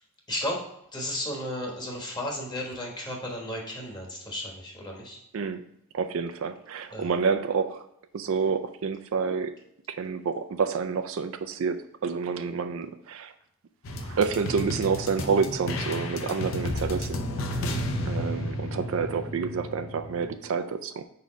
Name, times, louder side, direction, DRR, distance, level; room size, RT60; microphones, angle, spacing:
voice 1, 0.3-0.6 0.9-5.2 6.9-7.1 16.2-16.4, left 1 dB, 20° left, -1 dB, 1.1 m, -34 dB
voice 2, 5.3-5.6 5.9-7.9 8.1-9.6 9.9-13.3 14.0-17.2 18.1-21.0, right 5 dB, 65° right, 9 dB, 0.4 m, -28 dB
sound 1, 13.8-20.4, left 1 dB, 60° left, 0.6 m, -32 dB
4.7 x 4.1 x 5.0 m, 0.78 s
head